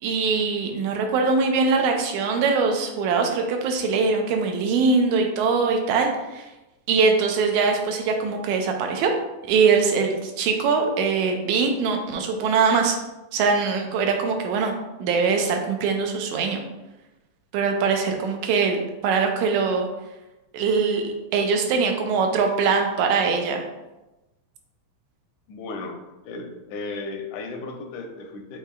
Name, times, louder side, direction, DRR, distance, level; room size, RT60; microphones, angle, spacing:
voice 1, 0.0-6.5 6.9-9.1 9.5-13.0 13.3-14.7 15.0-16.6 17.5-19.9 20.5-23.6, right 5 dB, 85° right, 3 dB, 2.0 m, -22 dB
voice 2, 25.5-26.0 26.3-28.6, left 3 dB, 80° left, 4 dB, 1.9 m, -35 dB
7.9 x 2.8 x 2.3 m, 1.0 s
omnidirectional pair, 3.3 m